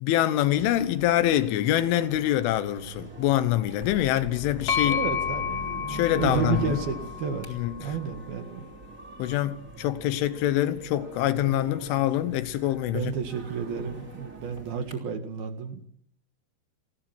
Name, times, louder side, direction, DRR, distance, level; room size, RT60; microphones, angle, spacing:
voice 1, 0.0-5.0 5.9-6.8 7.5-7.7 9.2-13.1, left 13 dB, 85° left, 3.6 m, -25 dB
sound 1, 0.6-14.9, right 2 dB, 20° right, 3.0 m, -44 dB
sound 2, 3.8-7.8, left 6 dB, 15° left, 5.4 m, -41 dB
sound 3, 4.7-8.4, left 7 dB, 35° left, 3.7 m, -31 dB
voice 2, 4.8-7.5 7.8-8.7 12.9-15.9, right 6 dB, 60° right, 3.3 m, -31 dB
28.0 x 21.0 x 6.1 m
omnidirectional pair, 5.5 m